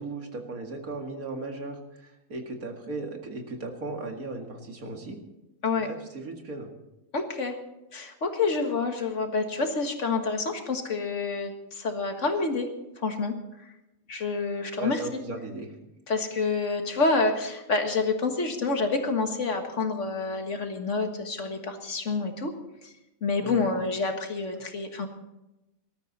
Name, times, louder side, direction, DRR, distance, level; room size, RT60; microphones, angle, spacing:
voice 1, 0.0-5.2 5.8-6.7 14.8-15.7 23.4-23.7, right 2 dB, 80° right, 3 dB, 2.5 m, -36 dB
voice 2, 7.1-7.6 7.9-12.7 13.0-13.7 14.1-15.0 16.1-22.5 22.8-22.9 23.2-25.1, left 3 dB, 55° left, 5 dB, 1.9 m, -28 dB
19.5 x 13.0 x 4.2 m, 0.96 s
omnidirectional pair, 1.5 m